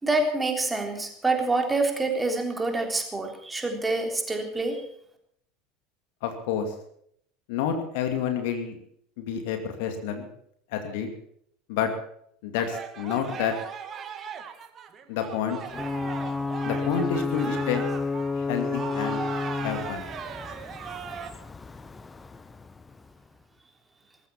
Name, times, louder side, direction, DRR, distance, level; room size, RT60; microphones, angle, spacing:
voice 1, 0.0-4.8, right 2 dB, 15° right, 3 dB, 3.6 m, -26 dB
voice 2, 6.2-6.7 7.5-8.8 9.2-10.3 10.7-11.1 11.7-11.9 12.4-13.5 15.1-15.6 16.6-17.9 18.4-19.2 19.6-20.0, left 8 dB, 55° left, 6 dB, 2.5 m, -29 dB
sound 1, 12.6-21.3, right 7 dB, 35° right, 1.9 m, -38 dB
Ocean / Boat Water vehicle / Alarm, 15.7-23.3, left 4 dB, 15° left, 1.0 m, -32 dB
19.0 x 15.0 x 4.4 m, 0.68 s
figure-of-eight pair, 75°, 0 cm